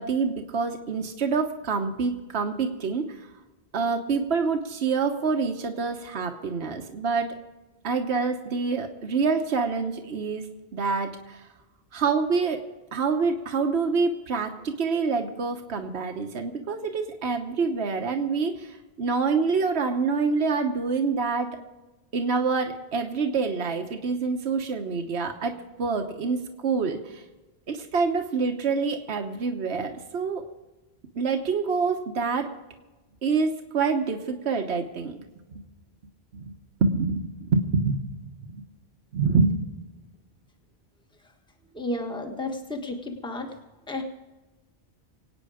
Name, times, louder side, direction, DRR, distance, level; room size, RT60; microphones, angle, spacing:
voice 1, 0.0-3.2 3.7-7.3 7.8-10.5 10.7-11.5 11.9-12.6 12.9-21.6 22.1-27.2 27.7-30.4 31.2-32.5 33.2-35.3 36.3-36.5 36.8-38.0 38.5-38.6 39.1-39.7, right 4 dB, 75° right, 4 dB, 1.3 m, -26 dB
voice 2, 41.7-43.5 43.9-44.0, left 2 dB, 5° left, 4 dB, 1.4 m, -32 dB
24.5 x 9.0 x 4.9 m, 1.1 s
omnidirectional pair, 1.1 m